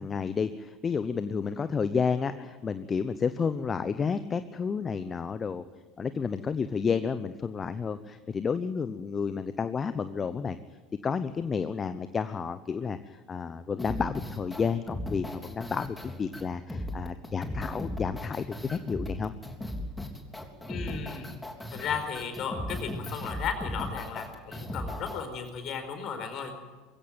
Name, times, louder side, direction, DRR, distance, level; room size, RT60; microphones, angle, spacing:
voice 1, 0.0-5.6 6.0-10.6 11.0-19.3, left 5 dB, 30° left, 12 dB, 0.9 m, -31 dB
sound 1, 13.8-25.2, left 1 dB, 10° left, 3.5 m, -37 dB
voice 2, 20.7-21.3 21.7-26.5, left 6 dB, 45° left, 7 dB, 4.7 m, -35 dB
22.0 x 16.5 x 9.4 m, 1.3 s
figure-of-eight pair, 75°, 0 cm